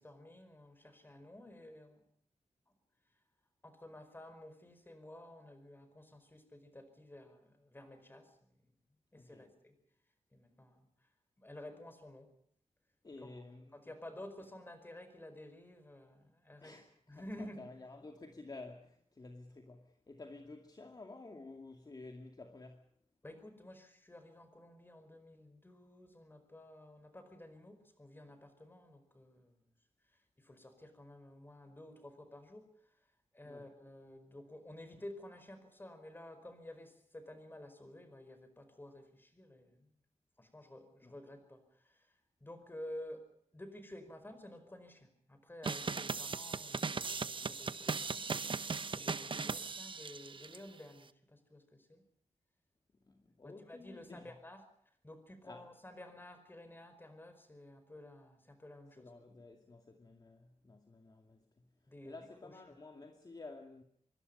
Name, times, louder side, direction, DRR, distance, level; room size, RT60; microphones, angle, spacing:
voice 1, 0.0-2.0 3.6-8.5 9.1-9.7 10.3-10.8 11.4-12.3 13.2-13.4 13.7-16.7 17.1-17.6 23.2-29.6 30.4-32.6 33.3-39.9 40.4-42.1 42.4-43.3 43.5-48.3 48.8-52.0 53.4-54.6 55.0-59.1 61.9-62.1 62.4-62.5, left 1 dB, 20° left, 4.9 m, -52 dB
voice 2, 9.1-9.5 13.0-13.9 16.6-22.9 33.4-33.7 41.0-41.2 45.9-46.2 53.1-54.4 55.4-55.7 59.0-61.7 62.0-63.8, left 3 dB, 35° left, 2.3 m, -52 dB
sound 1, 45.6-50.6, right 4 dB, 45° right, 0.9 m, -38 dB
25.5 x 23.5 x 5.5 m
wide cardioid pair, 135°, 12 cm